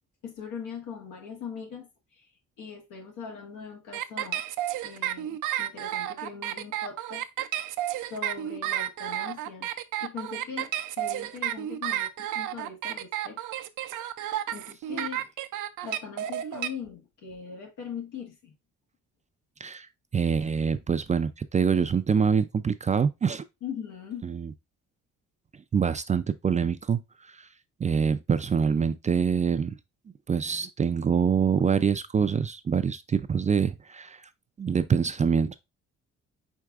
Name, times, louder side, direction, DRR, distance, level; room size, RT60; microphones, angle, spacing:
voice 1, 0.2-2.3 2.6-4.4 4.8-7.2 7.9-9.7 10.0-13.4 14.5-15.2 15.8-18.5 23.6-24.2, left 6 dB, 85° left, 1.5 m, -40 dB
sound 1, 3.9-16.7, right 12 dB, 85° right, 0.5 m, -31 dB
voice 2, 20.1-23.4 24.2-24.5 25.7-27.0 27.3-27.5 27.8-29.8 30.3-34.2 34.6-35.6, right 6 dB, 25° right, 0.3 m, -25 dB
4.6 x 4.5 x 2.4 m
cardioid pair, 90°, 30 cm